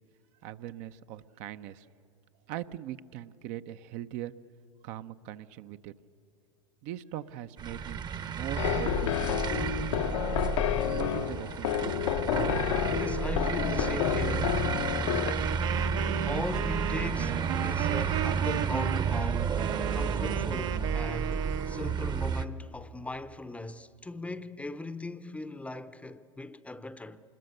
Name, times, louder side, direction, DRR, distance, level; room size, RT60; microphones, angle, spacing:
voice 1, 0.4-1.9 2.5-4.3 4.8-5.9 6.8-8.0 8.3-9.7 10.8-11.9 12.6-13.0, right 12 dB, 50° right, 0.7 m, -41 dB
sound 1, 7.6-22.4, right 6 dB, 25° right, 0.9 m, -31 dB
sound 2, 8.6-15.3, left 11 dB, 70° left, 0.9 m, -30 dB
voice 2, 13.0-14.6 16.2-19.5 19.9-27.2, left 2 dB, 10° left, 0.7 m, -39 dB
Wind instrument woodwind instrument, 15.2-21.9, right 11 dB, 75° right, 1.2 m, -35 dB
26.0 x 21.0 x 6.7 m
hypercardioid pair, 100°, 16 cm